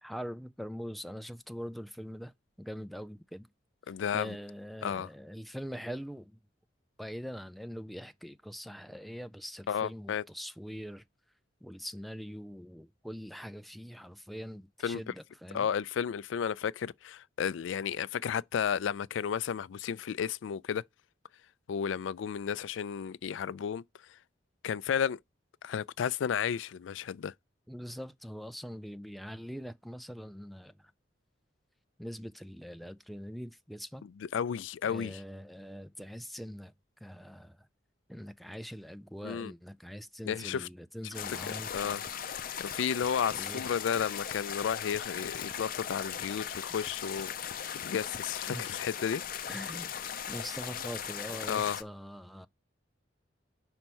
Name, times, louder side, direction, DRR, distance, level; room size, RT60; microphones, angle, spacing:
voice 1, 0.0-2.3 2.6-3.5 4.1-6.4 7.0-11.0 11.6-15.7 27.7-30.9 32.0-34.0 34.8-36.7 37.0-37.7 38.1-41.9 43.4-43.6 48.5-48.7 49.5-50.0 50.3-52.5, equal, ahead, 0.4 m, -43 dB
voice 2, 3.9-4.4 4.8-5.1 9.7-10.2 14.8-15.0 15.5-20.8 21.7-23.8 24.1-24.2 24.6-25.2 25.6-27.3 34.2-35.2 39.2-39.5 40.3-40.7 41.3-42.0 42.6-47.3 47.7-49.2 51.5-51.8, left 7 dB, 85° left, 0.4 m, -33 dB
sound 1, 41.1-51.8, left 8 dB, 50° left, 0.6 m, -38 dB
5.5 x 4.4 x 6.1 m
head